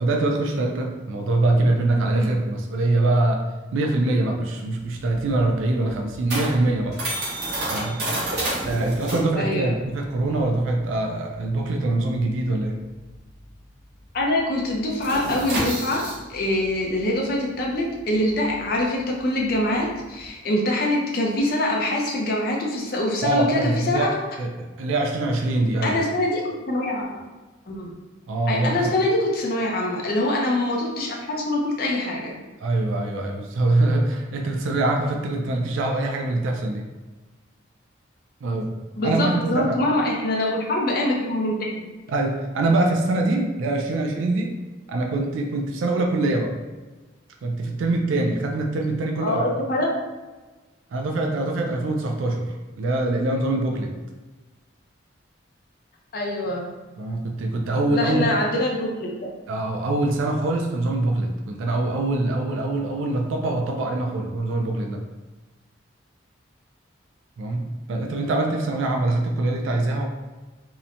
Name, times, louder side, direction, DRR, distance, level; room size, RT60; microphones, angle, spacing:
voice 1, 0.0-3.4 3.7-7.0 7.7-8.0 8.6-12.8 23.2-24.1 24.4-26.0 28.3-28.9 32.6-36.9 38.4-38.7 39.0-39.8 42.1-44.5 44.9-46.6 47.4-49.4 50.9-53.9 57.0-58.3 59.5-65.0 67.4-70.0, right 2 dB, 80° right, 2 dB, 0.3 m, -24 dB
sound 1, 4.8-13.7 14.0-14.3 14.5-20.3, right 1 dB, 55° right, 0.9 m, -31 dB
voice 2, 9.4-9.7 14.1-16.0 16.3-24.1 25.8-26.4 26.7-27.2 27.7-27.9 28.5-32.4 39.0-41.9 49.2-49.9 56.1-56.7 57.9-59.3, left 1 dB, 50° left, -1 dB, 0.4 m, -24 dB
2.8 x 2.1 x 2.5 m, 1.2 s
head